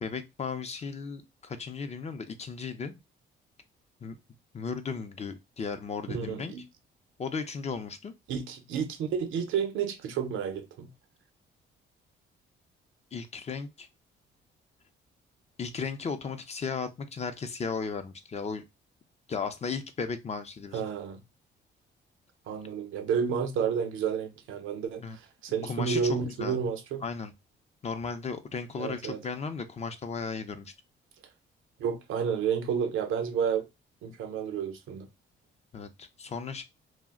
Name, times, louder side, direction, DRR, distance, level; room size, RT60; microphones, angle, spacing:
voice 1, 0.0-3.0 4.0-4.2 4.5-6.5 7.2-8.1 13.1-13.9 15.6-18.7 19.3-20.8 25.0-25.2 25.6-26.6 27.0-27.3 27.8-30.7 35.7-36.6, left 5 dB, 35° left, 0.5 m, -35 dB
voice 2, 6.1-6.6 8.3-10.9 20.7-21.2 22.5-27.0 28.8-29.2 31.8-33.7 34.0-35.1, right 7 dB, 85° right, 0.6 m, -31 dB
2.4 x 2.1 x 3.6 m
cardioid pair, 90°, 20 cm